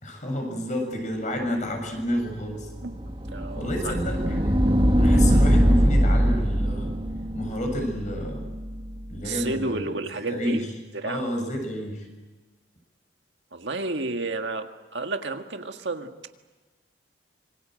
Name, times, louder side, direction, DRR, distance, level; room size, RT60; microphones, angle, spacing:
voice 1, 0.0-2.7 3.5-4.6 5.0-6.9 7.3-8.5 9.1-9.9 10.3-10.6 11.0-12.1, equal, 40° left, 3 dB, 6.8 m, -30 dB
sound 1, 2.4-9.2, equal, 25° right, 2.0 m, -22 dB
voice 2, 3.3-4.0 9.2-11.3 13.5-16.1, right 2 dB, 70° right, 5 dB, 1.8 m, -31 dB
26.5 x 24.5 x 7.7 m, 1.2 s
head